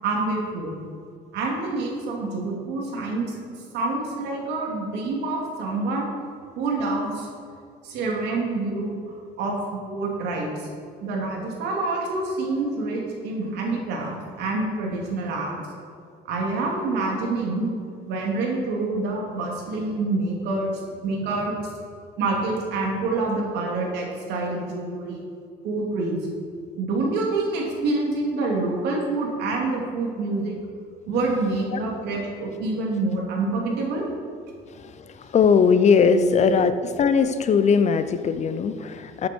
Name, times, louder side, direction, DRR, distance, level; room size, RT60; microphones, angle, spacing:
voice 1, 0.0-0.8 1.3-3.4 3.7-6.1 6.6-7.3 7.8-10.7 11.0-15.6 16.2-17.7 18.1-20.7 21.0-21.5 22.2-25.2 25.6-26.2 26.8-30.6 31.1-34.0 36.1-36.6, right 3 dB, 85° right, -1 dB, 2.8 m, -27 dB
voice 2, 34.8-36.7 37.0-39.3, left 6 dB, 40° left, 11 dB, 0.7 m, -20 dB
13.0 x 8.5 x 4.6 m, 2.3 s
cardioid pair, 110°, 17 cm